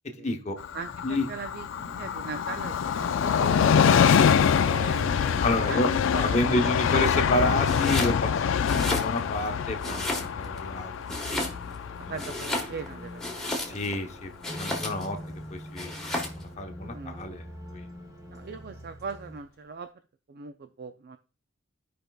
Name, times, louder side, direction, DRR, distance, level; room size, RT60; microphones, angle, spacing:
voice 1, 0.0-0.6 1.0-1.3 5.4-5.9 6.2-11.2 12.1-12.2 13.7-15.2 15.5-17.4 17.7-17.9, left 1 dB, 35° left, 4 dB, 0.8 m, -30 dB
Train, 0.6-13.9 14.2-14.3, left 7 dB, 65° left, 0.3 m, -25 dB
voice 2, 0.7-4.0 4.6-6.7 7.1-7.4 11.2-11.5 12.1-13.8 16.9-17.2 18.3-19.9 20.3-21.2, right 4 dB, 45° right, 9 dB, 0.4 m, -40 dB
sound 1, 0.9-19.4, equal, 15° right, 0.7 m, -46 dB
Domestic sounds home sounds, 7.6-8.2 8.6-9.5 9.8-10.6 11.1-11.8 12.1-14.0 14.4-15.1 15.8-16.4, left 1 dB, ahead, 1.2 m, -33 dB
14.0 x 5.1 x 2.3 m, 0.36 s
head